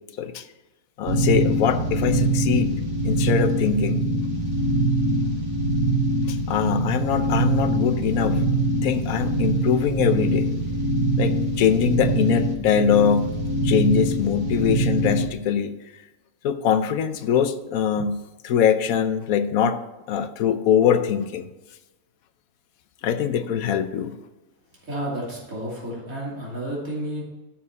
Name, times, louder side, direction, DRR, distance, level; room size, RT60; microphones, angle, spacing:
voice 1, 1.0-2.7 3.0-4.1 6.3-8.4 8.8-10.5 11.2-13.3 13.6-15.8 16.4-19.8 20.1-21.5 23.0-24.1, left 8 dB, 85° left, 11 dB, 1.1 m, -22 dB
sound 1, 1.1-15.2, right 1 dB, 70° right, 2.0 m, -23 dB
voice 2, 24.8-27.2, right 1 dB, 90° right, -6 dB, 3.3 m, -31 dB
13.0 x 4.8 x 4.1 m, 1.1 s
omnidirectional pair, 1.4 m